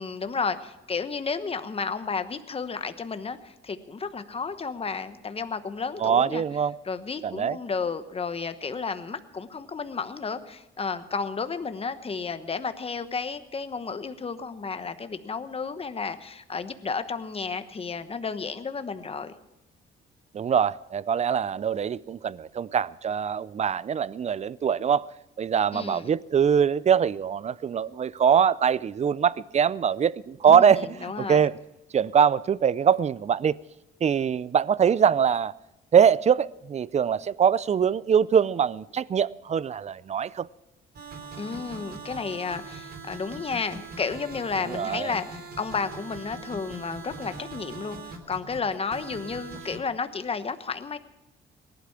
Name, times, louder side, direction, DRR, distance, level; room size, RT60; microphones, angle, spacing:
voice 1, 0.0-6.4 6.9-19.3 25.7-26.0 30.5-31.5 41.4-51.0, left 5 dB, 30° left, 1.1 m, -32 dB
voice 2, 6.0-6.7 7.2-7.6 20.3-25.1 25.4-31.6 31.9-33.6 34.0-35.5 35.9-40.5 44.7-45.1, right 7 dB, 35° right, 0.4 m, -23 dB
sound 1, 40.9-49.8, right 4 dB, 55° right, 3.1 m, -41 dB
18.0 x 12.0 x 5.8 m
cardioid pair, 90°, 20 cm